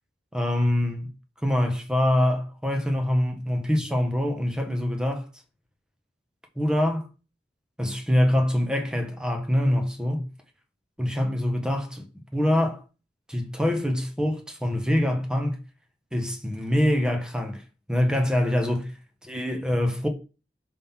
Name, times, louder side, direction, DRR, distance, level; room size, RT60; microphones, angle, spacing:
voice 1, 0.3-1.1 1.4-5.3 6.6-7.1 7.8-10.3 11.0-12.0 12.3-12.8 13.3-15.6 16.1-17.6 17.9-18.9 19.2-20.1, left 1 dB, 5° right, 1.4 m, -24 dB
6.6 x 5.7 x 3.7 m
head